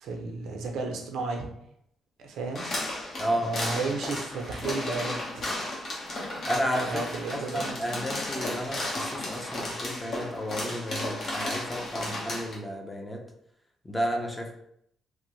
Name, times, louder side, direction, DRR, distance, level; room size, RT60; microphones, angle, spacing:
voice 1, 0.0-1.5 2.2-2.7 3.3-5.5 6.9-7.7, right 3 dB, 80° right, 2 dB, 0.5 m, -33 dB
sound 1, 2.6-12.6, left 1 dB, 50° left, 1.1 m, -34 dB
voice 2, 3.2-3.7 6.4-7.0 7.3-13.2 13.8-14.5, equal, 10° left, 0 dB, 0.6 m, -32 dB
3.2 x 2.1 x 3.1 m, 0.73 s
cardioid pair, 90°, 0 cm